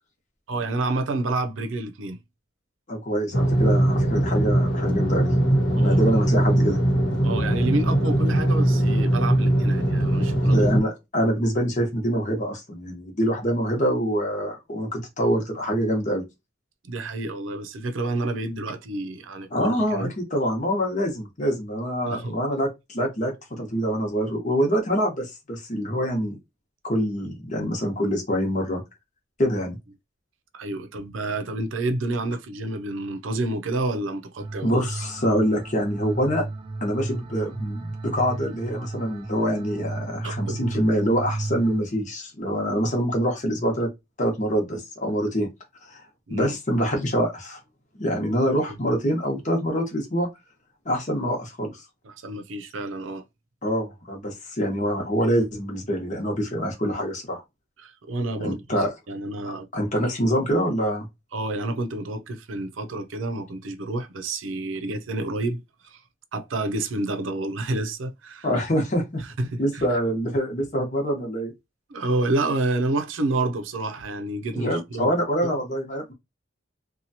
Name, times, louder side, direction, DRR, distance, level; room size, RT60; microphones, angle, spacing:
voice 1, 0.5-2.2 5.8-6.0 7.2-10.6 16.8-20.1 22.1-22.4 30.5-34.8 40.2-40.6 46.3-46.6 52.0-53.2 57.8-58.8 59.1-59.7 61.3-66.0 66.3-68.5 69.4-69.9 71.9-75.1 75.4-75.6, right 2 dB, 90° right, 0.5 m, -29 dB
voice 2, 2.9-5.3 5.7-6.8 10.4-16.2 19.5-26.4 26.8-28.8 29.4-29.8 34.6-36.4 36.8-43.9 44.2-45.5 45.8-46.0 46.3-47.6 48.0-50.3 50.8-51.8 53.6-57.4 58.4-58.9 59.5-61.1 68.4-69.2 69.6-71.5 74.5-76.1, equal, 40° left, 1.0 m, -25 dB
sound 1, 3.3-10.8, right 1 dB, 75° left, 1.1 m, -21 dB
sound 2, 34.4-41.8, right 2 dB, 30° right, 0.3 m, -33 dB
2.8 x 2.3 x 2.7 m
head